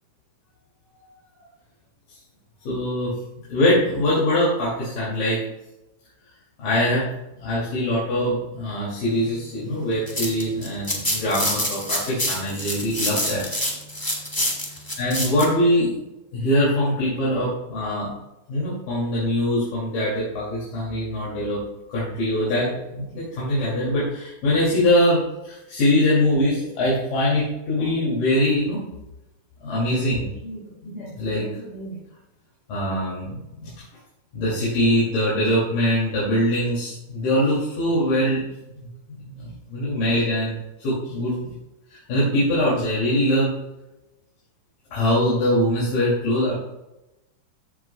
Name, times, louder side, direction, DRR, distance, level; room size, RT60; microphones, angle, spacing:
voice 1, 2.6-3.1 3.5-5.4 6.6-7.0 7.4-13.4 15.0-15.9 16.3-18.1 18.5-21.6 21.9-28.9 29.6-32.0 32.7-33.7 34.3-38.4 38.8-38.9 39.2-41.5 41.9-43.5 44.9-46.5, left 1 dB, 80° left, -8 dB, 4.5 m, -23 dB
sound 1, 9.8-15.5, left 1 dB, 30° left, 0.4 m, -27 dB
14.5 x 7.4 x 2.4 m, 0.94 s
omnidirectional pair, 3.8 m